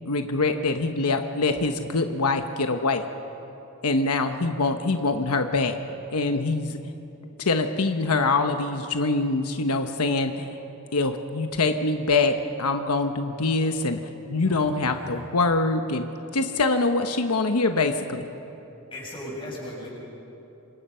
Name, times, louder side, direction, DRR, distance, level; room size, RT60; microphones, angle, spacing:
voice 1, 0.1-3.0 3.8-5.8 6.1-6.8 7.4-10.6 10.9-14.0 14.3-16.0 16.3-18.3, left 3 dB, 90° left, 6 dB, 1.1 m, -24 dB
voice 2, 14.4-15.3 18.9-19.9, left 1 dB, 25° left, -4 dB, 7.3 m, -38 dB
27.0 x 25.5 x 5.7 m, 3.0 s
head